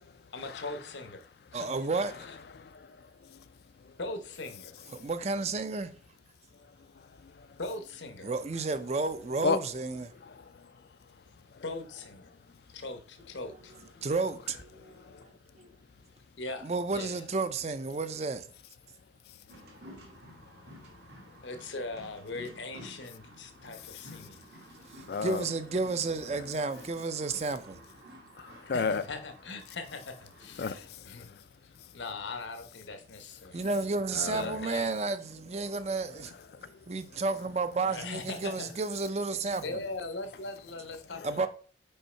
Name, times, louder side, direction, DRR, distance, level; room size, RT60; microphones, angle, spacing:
voice 1, 0.3-1.2 1.5-1.7 4.0-4.7 7.6-8.3 11.6-12.3 12.7-13.7 16.4-17.2 21.4-24.5 28.6-31.3 31.6-33.6 34.3-35.0 37.8-38.7 39.6-41.5, left 3 dB, 85° left, 0.9 m, -40 dB
voice 2, 1.5-2.3 4.9-5.9 8.2-10.1 14.0-15.3 15.6-15.7 16.6-18.5 24.8-28.2 33.5-39.8 41.2-41.5, right 3 dB, 35° right, 0.5 m, -32 dB
voice 3, 2.6-3.4 7.2-7.5 9.4-9.6 10.2-10.7 11.5-11.6 14.9-15.3 25.1-25.4 28.4-29.0 30.6-31.4 34.2-34.6 36.5-36.7, left 4 dB, 60° left, 0.4 m, -34 dB
sound 1, 19.5-30.8, right 1 dB, 65° right, 1.5 m, -52 dB
5.5 x 4.6 x 4.3 m
head